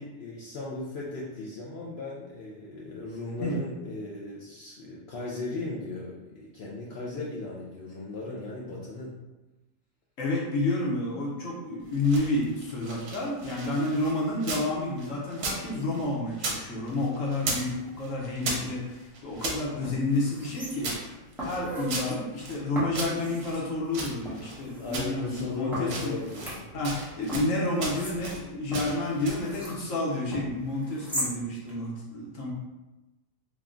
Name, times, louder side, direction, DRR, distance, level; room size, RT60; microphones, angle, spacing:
voice 1, 0.0-9.1 18.4-18.7 24.8-26.7 30.8-30.9, left 2 dB, 90° left, -5 dB, 0.5 m, -37 dB
voice 2, 10.2-20.9 21.4-26.3 26.7-32.5, left 2 dB, 60° left, -3 dB, 1.0 m, -30 dB
sound 1, 11.8-14.7 15.0-16.6 16.9-17.7 18.0-19.6 20.1-22.6 22.9-24.6 24.9-25.5 25.8-26.6 26.8-27.5 27.8-28.4 28.7-29.5, right 3 dB, 65° right, 1.2 m, -36 dB
sound 2, 19.3-19.4 19.8-21.0 21.4-22.2 22.7-23.6 24.2-25.0 25.7-27.0 27.3-29.8 30.3-31.3 31.7-31.8, equal, ahead, 0.6 m, -38 dB
3.5 x 2.3 x 3.7 m, 1.1 s
omnidirectional pair, 1.8 m